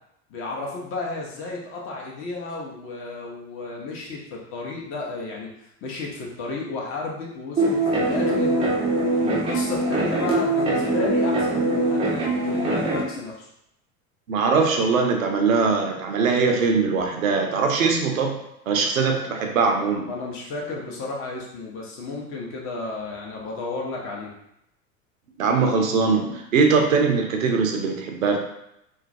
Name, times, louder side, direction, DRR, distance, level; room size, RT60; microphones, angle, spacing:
voice 1, 0.3-5.5 5.8-8.7 9.2-13.5 20.1-24.3, left 3 dB, 30° left, -2 dB, 0.6 m, -33 dB
sound 1, 7.6-13.0, right 2 dB, 15° right, 0.4 m, -22 dB
voice 2, 14.3-18.4 18.7-20.1 25.4-28.4, right 4 dB, 75° right, 2 dB, 0.5 m, -21 dB
2.2 x 2.1 x 2.6 m, 0.81 s
figure-of-eight pair, 75°, 42 cm